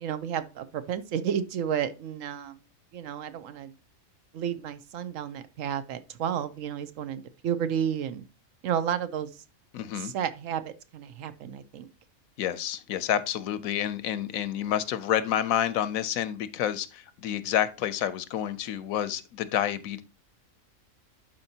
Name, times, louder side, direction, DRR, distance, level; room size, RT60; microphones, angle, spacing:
voice 1, 0.0-2.6 2.9-3.7 4.3-8.2 8.6-9.3 10.0-11.9, right 9 dB, 75° right, 1.0 m, -31 dB
voice 2, 9.7-10.1 12.4-20.0, left 10 dB, 90° left, 1.1 m, -29 dB
11.5 x 4.4 x 2.8 m
omnidirectional pair, 1.4 m